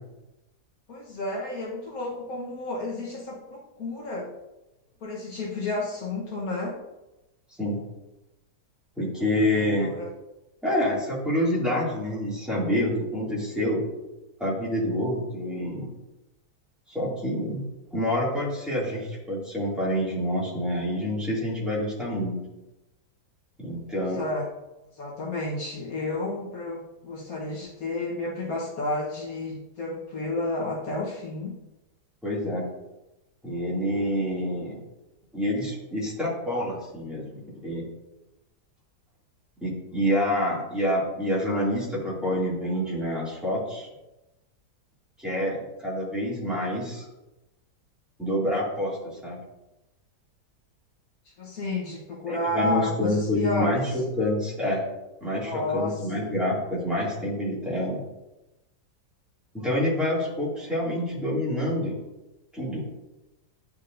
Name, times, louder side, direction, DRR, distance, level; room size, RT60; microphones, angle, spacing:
voice 1, 0.9-4.3 5.0-6.8 9.8-10.1 23.9-24.5 25.0-31.6 51.4-54.0 55.4-56.3, left 2 dB, 60° left, -3 dB, 1.5 m, -31 dB
voice 2, 9.0-9.9 10.6-13.8 14.4-15.9 16.9-17.6 17.9-22.4 23.6-24.2 32.2-32.6 33.4-34.8 35.3-37.9 39.6-43.9 45.2-47.1 48.2-49.0 49.2-49.4 52.3-54.8 55.2-58.0 59.5-62.0 62.5-62.8, left 1 dB, ahead, -7 dB, 2.2 m, -27 dB
10.0 x 4.5 x 2.6 m, 0.98 s
omnidirectional pair, 1.8 m